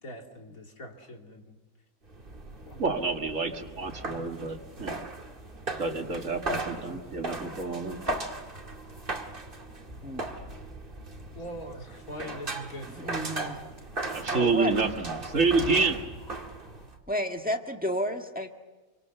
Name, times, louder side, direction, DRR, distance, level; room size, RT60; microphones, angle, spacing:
voice 1, 0.0-1.6 2.6-2.9 11.3-13.4, equal, 75° left, 2 dB, 3.3 m, -42 dB
sound 1, 2.1-17.0, right 2 dB, 40° right, 2.1 m, -38 dB
voice 2, 2.8-5.0 5.8-8.0 14.1-16.1, right 4 dB, 60° right, 4 dB, 2.3 m, -28 dB
sound 2, 7.1-11.9 14.2-17.0, left 1 dB, 45° left, 5.2 m, -48 dB
voice 3, 12.9-13.6 14.3-14.7 17.1-18.5, equal, 5° right, 3 dB, 1.6 m, -32 dB
27.5 x 24.5 x 6.9 m, 1.2 s
omnidirectional pair, 1.5 m